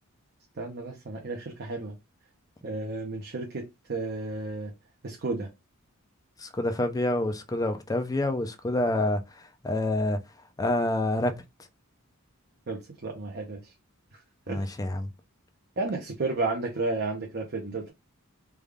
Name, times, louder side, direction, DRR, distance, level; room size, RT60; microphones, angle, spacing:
voice 1, 0.6-1.9 2.6-4.7 5.0-5.5 12.7-13.6 14.5-14.6 15.8-17.9, right 3 dB, 50° right, 0.6 m, -32 dB
voice 2, 6.4-10.2 10.6-11.3 14.5-15.1, left 1 dB, 15° left, 0.4 m, -27 dB
3.4 x 2.3 x 3.4 m
head